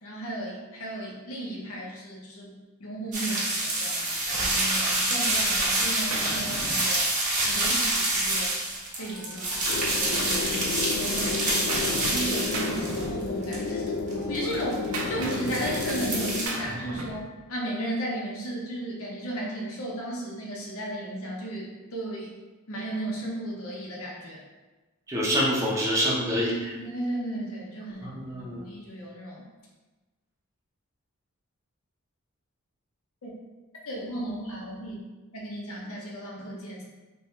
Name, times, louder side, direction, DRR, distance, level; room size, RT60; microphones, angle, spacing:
voice 1, 0.0-2.5 2.8-7.1 7.5-8.6 9.0-10.7 10.9-13.8 14.3-22.3 22.7-24.4 26.8-29.5 33.2-33.3 33.9-35.0 35.3-36.8, right 1 dB, 80° left, -3 dB, 0.8 m, -35 dB
sound 1, 3.1-13.0 13.4-14.9 15.2-16.5, right 1 dB, 40° right, 1.0 m, -27 dB
Gunshot gunfire, 3.3-3.5 4.0-5.5 5.8-7.5 8.5-10.3 10.7-12.2 12.5-13.8 14.1-17.3, right 2 dB, 85° right, 0.6 m, -38 dB
sound 2, 9.7-16.4, left 3 dB, 60° left, 0.3 m, -32 dB
voice 2, 25.1-26.7 28.0-28.7, equal, 15° right, -5 dB, 0.7 m, -26 dB
3.3 x 2.2 x 4.2 m, 1.2 s
head